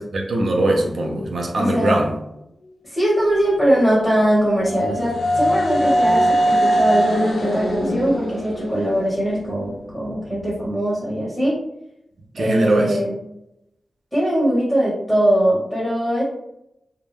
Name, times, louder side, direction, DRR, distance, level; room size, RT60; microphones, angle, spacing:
voice 1, 0.1-2.1 12.3-13.0, right 1 dB, 75° right, 1 dB, 0.5 m, -21 dB
voice 2, 1.6-2.0 2.8-11.6 12.4-13.1 14.1-16.2, right 1 dB, ahead, -7 dB, 1.0 m, -21 dB
sound 1, 3.8-9.7, equal, 80° left, 0.4 m, -21 dB
2.3 x 2.1 x 3.1 m, 0.82 s
wide cardioid pair, 110°, 0 cm